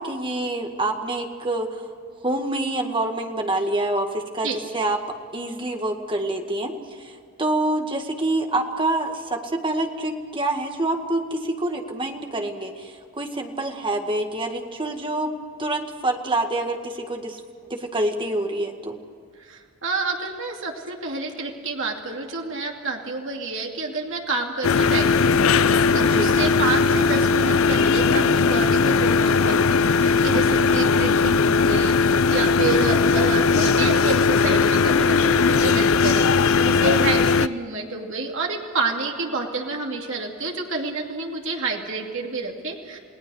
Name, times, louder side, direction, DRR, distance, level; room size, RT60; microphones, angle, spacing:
voice 1, 0.0-1.7 2.2-4.5 4.7-6.7 7.0-15.3 15.6-17.4 17.7-19.0 26.0-26.3 30.3-30.7, right 2 dB, 25° right, 4 dB, 1.9 m, -26 dB
voice 2, 19.4-43.0, right 3 dB, 60° right, 1 dB, 2.6 m, -29 dB
sound 1, 24.6-37.5, left 5 dB, 70° left, 0.5 m, -18 dB
29.0 x 18.5 x 6.4 m, 2.1 s
head